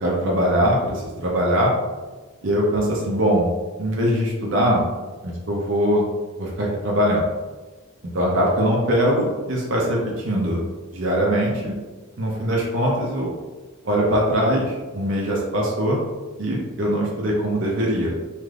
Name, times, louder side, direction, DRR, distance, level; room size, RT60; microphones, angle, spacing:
voice 1, 0.0-1.7 2.4-3.5 3.8-4.8 5.5-6.1 6.4-7.3 8.1-10.6 10.9-11.7 12.2-13.3 13.8-16.0 16.4-18.1, equal, 55° right, -3 dB, 0.5 m, -21 dB
3.3 x 2.5 x 2.4 m, 1.3 s
head